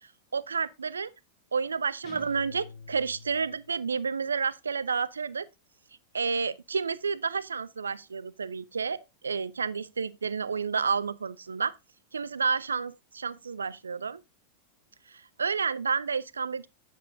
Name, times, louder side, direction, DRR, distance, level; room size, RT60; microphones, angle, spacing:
voice 1, 0.3-1.1 1.5-5.5 6.1-9.0 9.2-11.7 12.1-14.2 15.1-16.7, right 5 dB, 75° right, 0.4 m, -30 dB
sound 1, 2.0-3.7, left 5 dB, 45° left, 1.7 m, -47 dB
8.7 x 8.2 x 2.5 m
figure-of-eight pair, 90°, 0 cm